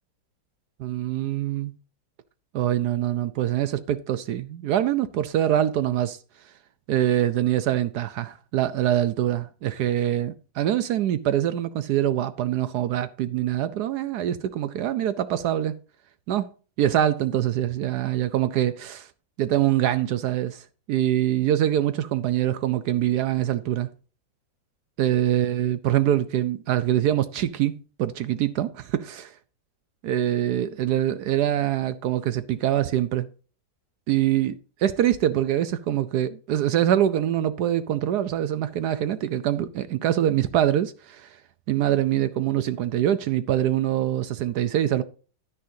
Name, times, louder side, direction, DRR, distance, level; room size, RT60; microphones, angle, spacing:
voice 1, 0.8-1.7 2.5-6.2 6.9-15.8 16.3-16.5 16.8-19.1 19.4-23.9 25.0-29.3 30.0-33.3 34.1-41.4 41.7-45.0, right 11 dB, 70° right, 1.1 m, -24 dB
10.5 x 9.8 x 2.7 m
omnidirectional pair, 2.0 m